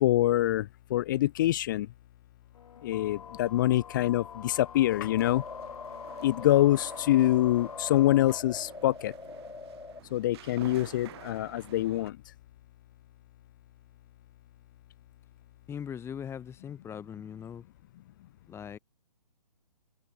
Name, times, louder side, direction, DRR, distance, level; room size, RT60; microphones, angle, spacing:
voice 1, 0.0-1.9 2.8-5.4 6.2-9.1 10.1-12.2, left 14 dB, 30° left, 0.6 m, -25 dB
sound 1, 2.6-8.4, left 7 dB, 60° left, 4.3 m, -45 dB
sound 2, 5.0-10.0, left 3 dB, 85° left, 5.3 m, -44 dB
sound 3, 5.2-12.1, right 14 dB, 40° right, 5.8 m, -51 dB
voice 2, 15.7-17.6 18.5-18.8, left 8 dB, 10° left, 4.9 m, -40 dB
figure-of-eight pair, 140°, 21 cm